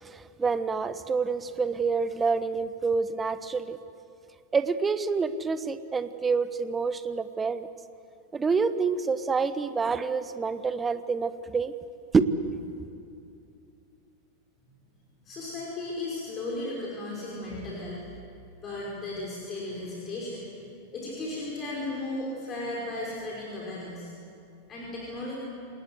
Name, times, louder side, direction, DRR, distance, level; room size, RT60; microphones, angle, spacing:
voice 1, 0.0-3.8 4.5-7.7 8.3-11.7 12.1-12.6, right 4 dB, 15° right, 13 dB, 1.1 m, -27 dB
voice 2, 15.2-18.0 18.6-20.5 20.9-24.1 24.7-25.4, left 2 dB, 25° left, -4 dB, 5.4 m, -35 dB
28.0 x 19.5 x 8.1 m, 2.6 s
figure-of-eight pair, 90°, 0 cm